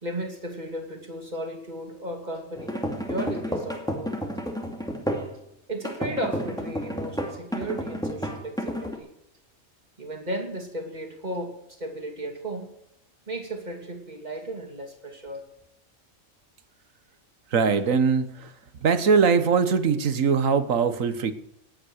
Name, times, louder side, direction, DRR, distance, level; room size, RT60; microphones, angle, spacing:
voice 1, 0.0-2.7 3.1-4.1 5.7-9.1 10.0-12.7 13.3-15.4, right 1 dB, 35° right, 3 dB, 2.8 m, -35 dB
sound 1, 2.6-5.3 5.8-9.0, equal, 5° left, 2.4 m, -31 dB
voice 2, 17.5-21.3, right 5 dB, 80° right, 11 dB, 1.6 m, -22 dB
19.5 x 8.9 x 6.4 m, 0.81 s
omnidirectional pair, 1.4 m